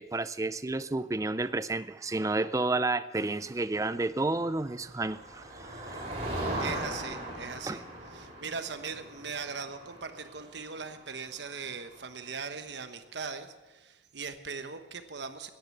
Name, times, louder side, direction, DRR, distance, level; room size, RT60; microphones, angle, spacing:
voice 1, 0.0-6.0 7.7-7.8, right 2 dB, 20° right, 14 dB, 0.4 m, -31 dB
Motor vehicle (road), 4.3-12.1, right 1 dB, 35° right, 3.5 m, -39 dB
voice 2, 6.6-7.8 8.1-15.5, right 5 dB, 70° right, 8 dB, 1.1 m, -40 dB
15.0 x 10.5 x 7.4 m, 1.1 s
head